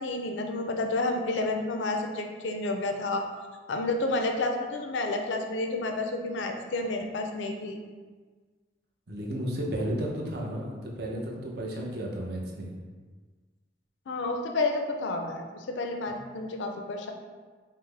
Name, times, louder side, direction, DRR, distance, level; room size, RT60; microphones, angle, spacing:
voice 1, 0.0-3.2 3.7-7.8 14.1-17.1, left 2 dB, 80° left, 4 dB, 0.5 m, -30 dB
voice 2, 9.1-12.8 16.1-16.2, equal, 60° right, -2 dB, 0.7 m, -33 dB
5.5 x 2.1 x 3.3 m, 1.4 s
head